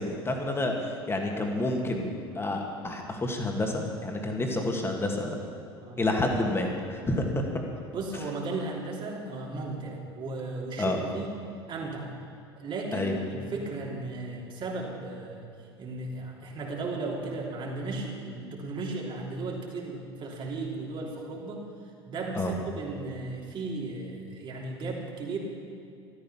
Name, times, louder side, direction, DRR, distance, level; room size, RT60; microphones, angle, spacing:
voice 1, 0.0-5.4 6.0-7.4 10.8-11.0 12.9-13.2 22.4-22.5, left 2 dB, 20° left, 2 dB, 2.4 m, -29 dB
voice 2, 7.9-11.3 11.7-12.1 12.6-15.5 15.8-21.7 22.0-25.4, right 3 dB, 35° right, -1 dB, 3.2 m, -35 dB
13.5 x 13.0 x 5.9 m, 2.5 s
figure-of-eight pair, 70°, 13 cm